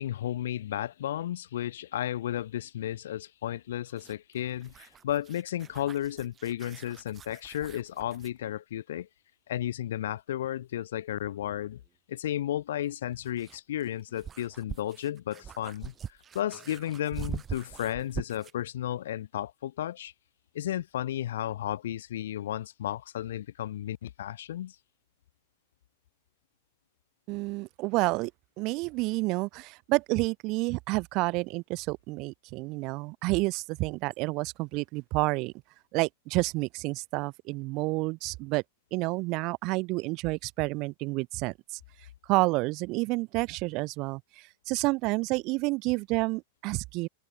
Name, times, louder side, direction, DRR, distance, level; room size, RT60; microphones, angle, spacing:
voice 1, 0.0-9.1 9.5-11.8 12.1-20.1 20.5-24.8, left 12 dB, 60° left, 2.7 m, -33 dB
sound 1, 3.9-8.4 10.7-10.8 12.8-18.6, right 8 dB, 25° right, 4.0 m, -43 dB
voice 2, 27.3-28.3 28.6-35.5 35.9-38.6 38.9-41.8 42.3-47.1, right 24 dB, 40° right, 1.4 m, -29 dB
figure-of-eight pair, 90°, 0 cm